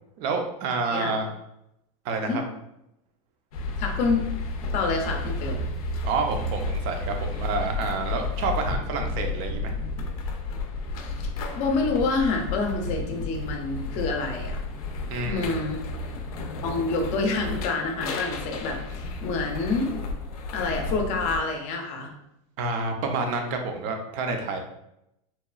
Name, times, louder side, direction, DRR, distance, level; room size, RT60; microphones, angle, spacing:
voice 1, 0.2-1.3 2.0-2.4 6.0-9.7 15.1-15.6 22.6-24.6, right 4 dB, 45° right, 4 dB, 0.5 m, -29 dB
sound 1, 3.5-21.4, left 3 dB, 90° left, 0.5 m, -32 dB
voice 2, 3.8-4.2 4.7-5.7 11.0-11.3 11.5-14.6 15.3-15.8 16.6-19.9 20.5-22.1, left 3 dB, 40° left, 3 dB, 0.5 m, -27 dB
2.9 x 2.3 x 2.3 m, 0.82 s
supercardioid pair, 140°, 18 cm